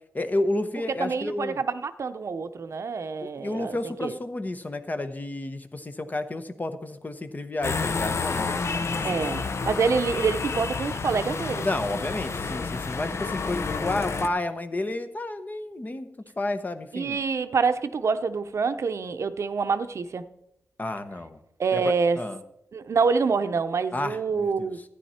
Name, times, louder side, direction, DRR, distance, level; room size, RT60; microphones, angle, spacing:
voice 1, 0.1-1.6 3.2-8.5 9.1-9.2 11.6-16.1 16.4-17.2 20.8-21.4 21.7-21.8 22.2-22.4 23.9-24.7, left 2 dB, 30° left, 1.0 m, -31 dB
voice 2, 1.0-4.2 8.7-11.7 16.9-20.3 21.6-22.2 22.7-24.8, right 5 dB, 65° right, 0.7 m, -26 dB
sound 1, 7.6-14.3, left 4 dB, 55° left, 0.8 m, -30 dB
13.5 x 10.0 x 4.4 m
wide cardioid pair, 90°, 5 cm